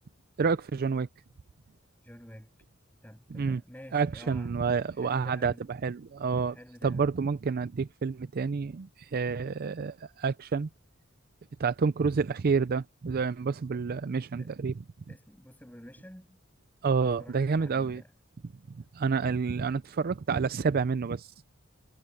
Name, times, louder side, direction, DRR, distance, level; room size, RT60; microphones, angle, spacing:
voice 1, 0.4-1.1 3.3-3.6 3.9-5.5 5.8-6.6 6.8-10.7 11.6-14.7 16.8-18.0 18.9-21.3, right 5 dB, 45° right, 0.4 m, -29 dB
voice 2, 2.0-2.5 3.0-4.5 5.0-5.7 6.5-7.2 13.7-13.8 14.4-14.5 15.1-16.4 17.0-18.1, equal, 10° left, 7.2 m, -50 dB
head